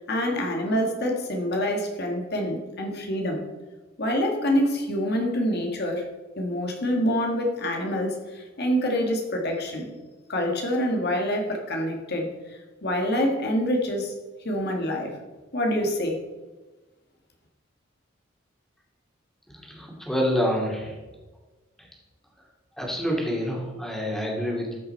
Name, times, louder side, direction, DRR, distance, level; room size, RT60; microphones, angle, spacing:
voice 1, 0.0-3.4 4.0-6.0 6.4-9.9 10.3-14.1 14.4-15.1 15.5-16.2, equal, 55° left, 2 dB, 1.6 m, -26 dB
voice 2, 19.5-21.0 21.8-21.9 22.8-24.7, equal, ahead, -2 dB, 2.3 m, -27 dB
13.0 x 5.7 x 4.4 m, 1.2 s
head